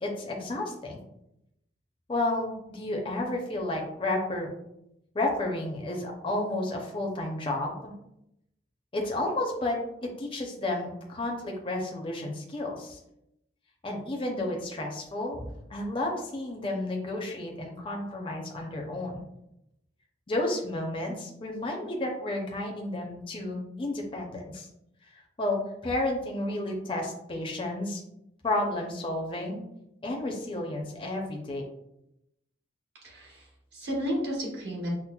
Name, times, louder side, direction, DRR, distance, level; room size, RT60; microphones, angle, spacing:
voice 1, 0.0-1.0 2.1-4.5 5.1-7.9 8.9-13.0 13.8-19.2 20.3-24.7 25.1-28.0 28.4-29.6 30.0-31.6, left 2 dB, 30° left, 0 dB, 0.5 m, -32 dB
voice 2, 33.0-34.9, equal, 60° right, -3 dB, 1.0 m, -33 dB
5.7 x 2.0 x 2.2 m, 0.84 s
head